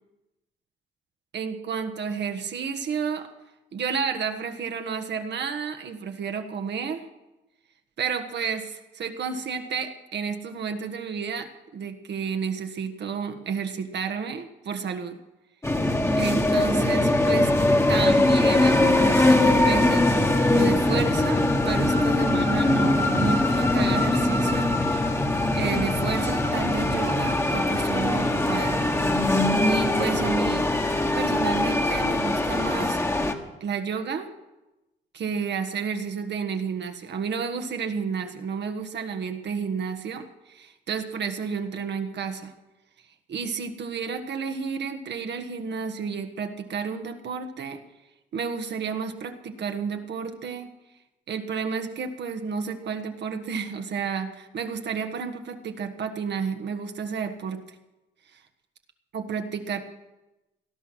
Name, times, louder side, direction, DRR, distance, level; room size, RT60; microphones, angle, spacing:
voice 1, 1.3-3.3 3.7-7.0 8.0-15.2 16.2-17.5 17.9-20.2 20.5-25.2 25.5-28.8 29.6-30.7 31.1-33.0 33.6-34.3 35.1-42.5 43.3-47.8 48.3-50.7 51.3-57.6 58.3-58.4 59.1-59.8, right 6 dB, 60° right, 6 dB, 1.5 m, -31 dB
sound 1, 15.6-33.3, left 2 dB, 15° left, 1.6 m, -22 dB
18.5 x 11.5 x 6.3 m, 1.0 s
cardioid pair, 90°, 20 cm